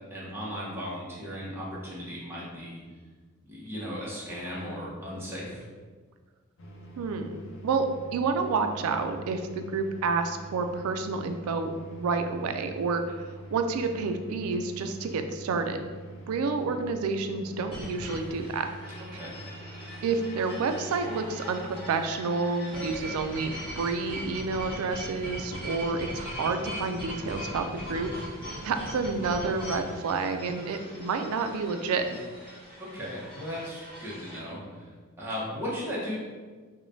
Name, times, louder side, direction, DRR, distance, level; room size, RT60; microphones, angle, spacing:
voice 1, 0.1-2.8 3.4-5.6 19.0-19.4 32.8-34.9 35.2-36.1, equal, 10° right, -7 dB, 0.9 m, -36 dB
sound 1, 6.6-22.2, right 1 dB, 65° left, 0.6 m, -45 dB
voice 2, 7.0-7.4 7.6-7.9 8.1-13.2 13.5-15.9 16.3-18.7 20.0-28.1 28.6-32.0, right 4 dB, 85° right, 7 dB, 0.3 m, -29 dB
sound 2, 17.7-34.4, equal, 25° left, 1.1 m, -40 dB
5.0 x 2.2 x 2.6 m, 1.4 s
head